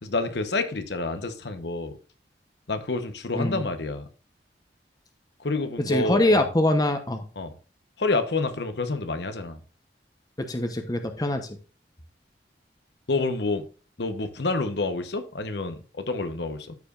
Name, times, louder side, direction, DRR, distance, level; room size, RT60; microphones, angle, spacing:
voice 1, 0.0-2.0 2.7-4.1 5.4-6.5 7.4-7.5 8.0-9.6 13.1-13.7 14.0-16.8, left 3 dB, 70° left, 1.0 m, -28 dB
voice 2, 5.9-7.2 10.5-11.6, left 1 dB, 20° left, 0.9 m, -23 dB
13.5 x 5.0 x 2.5 m
head